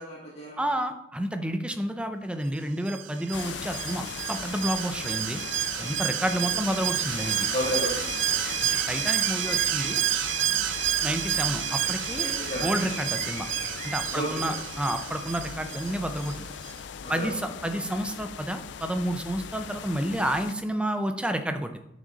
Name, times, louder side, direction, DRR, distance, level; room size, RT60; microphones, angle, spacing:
voice 1, 0.0-0.6 6.5-6.6 7.5-8.6 9.4-9.6 12.2-12.7 14.1-14.4 17.0-17.3 17.7-17.8, equal, 35° left, -6 dB, 2.6 m, -33 dB
voice 2, 0.6-5.4 5.8-7.5 8.9-10.0 11.0-12.3 12.6-13.5 13.8-16.5 17.1-21.8, right 1 dB, 5° right, 7 dB, 0.6 m, -30 dB
Alarm, 2.9-16.3 16.7-16.8, right 12 dB, 80° right, 0.4 m, -30 dB
sound 1, 3.3-20.5, left 7 dB, 70° left, 0.4 m, -39 dB
Bird, 5.5-15.1, left 1 dB, 15° left, 2.3 m, -45 dB
10.0 x 6.3 x 4.0 m, 0.85 s
head